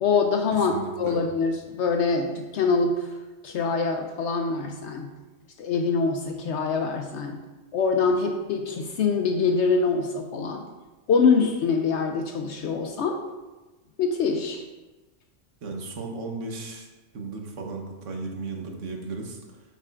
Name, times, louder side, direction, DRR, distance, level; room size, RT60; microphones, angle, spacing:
voice 1, 0.0-3.1 3.4-5.1 5.6-7.4 7.7-10.6 11.1-13.2 14.0-14.6, left 4 dB, 70° left, 4 dB, 0.8 m, -24 dB
voice 2, 0.5-1.2 15.6-16.9 17.1-19.6, right 3 dB, 70° right, 2 dB, 1.3 m, -35 dB
8.3 x 5.7 x 2.4 m, 1.2 s
omnidirectional pair, 1.3 m